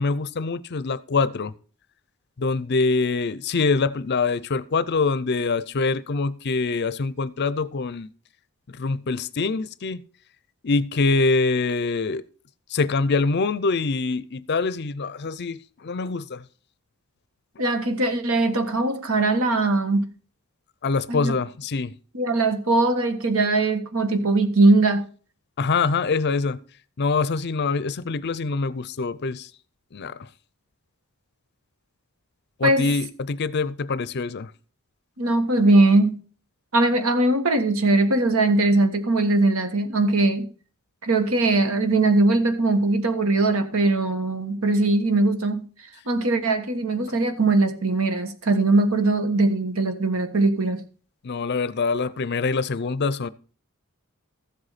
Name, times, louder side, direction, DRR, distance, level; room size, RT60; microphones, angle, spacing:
voice 1, 0.0-1.5 2.4-8.1 8.7-10.0 10.6-12.2 12.7-16.4 20.8-22.0 25.6-26.6 27.0-29.5 29.9-30.2 32.6-34.5 51.2-53.3, left 4 dB, 50° left, 0.5 m, -24 dB
voice 2, 17.6-20.1 21.1-21.3 22.1-25.1 32.6-32.9 35.2-36.2 36.7-40.5 41.0-45.7 46.1-50.8, right 2 dB, 70° right, 1.4 m, -20 dB
14.0 x 7.9 x 4.2 m
head